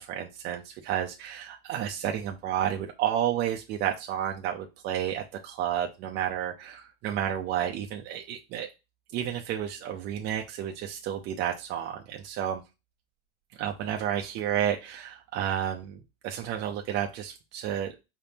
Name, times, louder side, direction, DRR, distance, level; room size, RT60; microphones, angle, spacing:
voice 1, 0.0-8.7 9.1-12.6 13.6-17.9, right 10 dB, 35° right, 2 dB, 0.6 m, -31 dB
4.8 x 3.5 x 2.7 m, 0.26 s
supercardioid pair, 150°, 31 cm